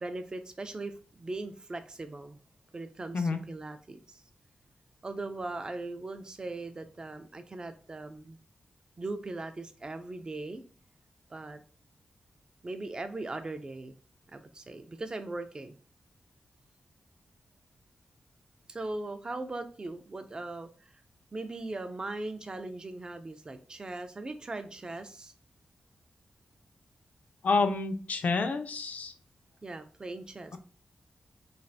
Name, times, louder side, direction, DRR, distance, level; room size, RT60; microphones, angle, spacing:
voice 1, 0.0-2.4 2.7-4.2 5.0-8.4 9.0-10.6 11.3-11.6 12.6-14.0 14.3-15.8 18.7-20.9 21.3-25.3 29.6-30.6, right 2 dB, 25° right, 0.3 m, -39 dB
voice 2, 27.4-29.1, left 4 dB, 55° left, 0.4 m, -28 dB
3.2 x 2.3 x 2.6 m
wide cardioid pair, 145°, 3 cm